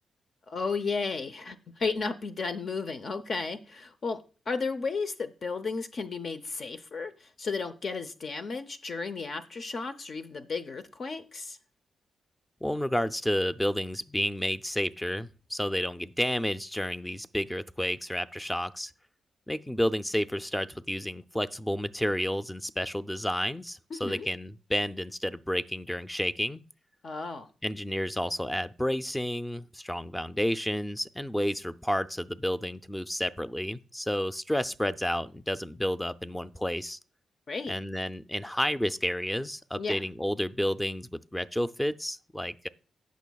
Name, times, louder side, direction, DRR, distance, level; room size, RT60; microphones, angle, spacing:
voice 1, 0.5-4.2 4.5-11.6 23.9-24.3 27.0-27.5 37.5-37.7 39.7-40.0, left 4 dB, 50° left, 0.7 m, -33 dB
voice 2, 12.6-18.9 19.5-26.6 27.6-37.0 37.7-42.7, equal, 5° left, 0.5 m, -31 dB
17.0 x 6.2 x 2.3 m
cardioid pair, 100°, 0 cm